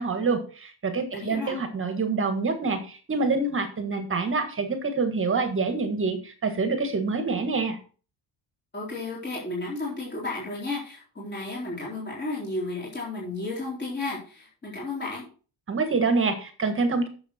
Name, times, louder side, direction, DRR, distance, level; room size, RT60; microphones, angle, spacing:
voice 1, 0.0-7.8 15.7-17.1, right 4 dB, 30° right, 7 dB, 1.6 m, -26 dB
voice 2, 1.1-1.6 8.7-15.2, left 2 dB, 25° left, -5 dB, 4.1 m, -33 dB
10.5 x 7.1 x 4.4 m, 0.37 s
cardioid pair, 170°, 44 cm